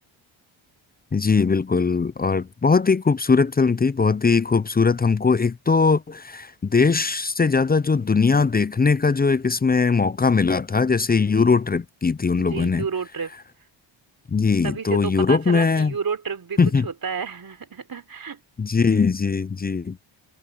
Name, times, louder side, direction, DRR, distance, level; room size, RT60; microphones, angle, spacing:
voice 1, 1.1-12.9 14.3-15.9 16.6-16.9 18.6-20.0, left 4 dB, 20° left, 0.5 m, -20 dB
voice 2, 12.4-13.3 14.6-18.4, right 6 dB, 45° right, 4.0 m, -31 dB
cardioid pair, 85°, 50 cm